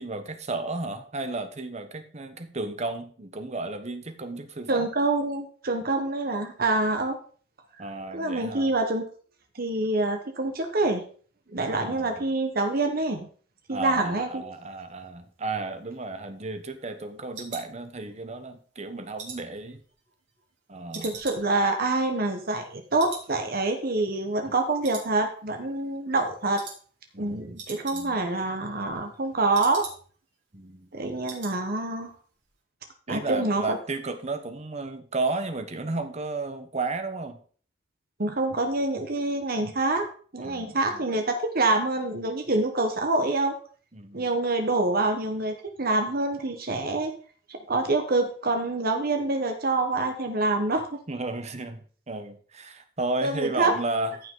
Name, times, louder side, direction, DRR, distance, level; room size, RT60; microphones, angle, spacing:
voice 1, 0.0-4.9 7.8-8.7 11.8-12.3 13.7-19.8 20.7-21.1 27.1-27.6 27.9-28.2 30.5-30.9 33.1-37.4 40.4-40.8 43.9-44.2 51.1-54.1, right 3 dB, 35° right, 9 dB, 1.1 m, -33 dB
voice 2, 4.7-7.2 7.8-7.9 8.1-9.0 9.5-11.0 11.5-13.3 13.7-14.4 20.9-26.6 27.2-29.9 30.9-32.1 33.1-33.8 38.2-40.1 40.3-43.6 44.1-47.2 47.5-51.0 53.2-53.7, right 2 dB, 50° right, 5 dB, 1.3 m, -26 dB
sound 1, 15.6-18.4 18.8-20.5 20.9-22.7 23.0-23.3 23.6-23.7 24.2-24.6 24.8-25.6 25.9-26.2 26.5-26.8 27.1-27.2 27.4-28.4 28.7-30.3 30.6-30.7 31.0-31.6 31.9-32.1 32.4-32.5, right 5 dB, 75° right, 3.4 m, -43 dB
14.5 x 5.8 x 3.9 m, 0.43 s
head